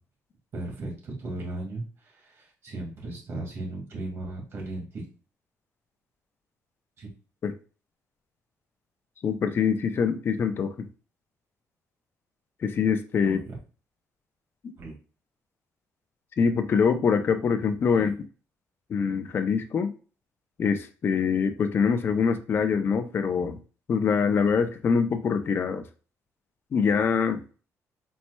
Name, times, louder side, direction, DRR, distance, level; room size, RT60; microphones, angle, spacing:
voice 1, 0.5-5.0 7.0-7.1 13.2-13.6 14.8-15.0 17.9-18.1, right 2 dB, 45° right, -1 dB, 2.0 m, -36 dB
voice 2, 9.2-10.9 12.6-13.4 16.4-18.1 18.9-19.9 20.6-23.6 23.9-25.9 26.7-27.4, left 6 dB, 40° left, 8 dB, 0.5 m, -24 dB
4.3 x 4.2 x 2.2 m, 0.36 s
cardioid pair, 150°, 6 cm